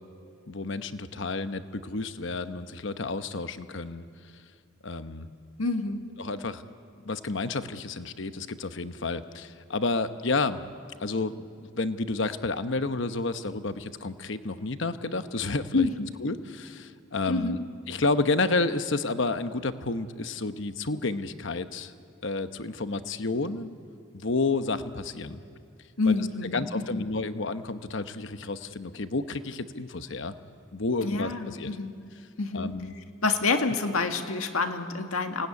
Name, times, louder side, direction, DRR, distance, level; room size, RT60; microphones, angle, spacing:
voice 1, 0.5-4.1 4.8-5.3 6.2-6.6 7.0-10.6 11.0-15.9 16.2-17.6 17.9-21.9 22.2-23.8 24.1-25.4 26.1-26.2 26.5-30.3 30.7-31.7 32.5-32.9, left 3 dB, 60° left, 10 dB, 1.0 m, -30 dB
voice 2, 5.6-6.1 15.7-16.1 17.3-17.6 26.0-27.0 31.0-31.9 32.4-32.8 33.2-35.5, left 3 dB, 85° left, 6 dB, 1.9 m, -28 dB
29.0 x 19.0 x 9.7 m, 2.5 s
head